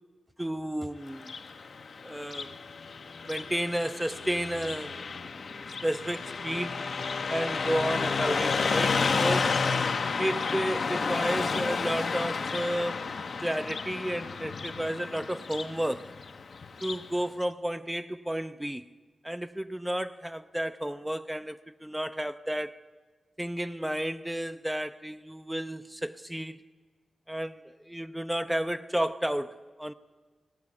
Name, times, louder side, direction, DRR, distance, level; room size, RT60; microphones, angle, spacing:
voice 1, 0.4-1.3 2.0-2.6 3.2-5.1 5.8-6.9 7.3-9.6 10.2-13.0 13.4-16.1 16.8-18.9 19.2-22.8 23.4-26.6 27.3-29.9, right 1 dB, 10° right, 0.5 m, -32 dB
Car passing by, 1.1-17.1, left 4 dB, 65° left, 0.7 m, -31 dB
17.5 x 7.0 x 9.5 m
supercardioid pair, 40°, 0 cm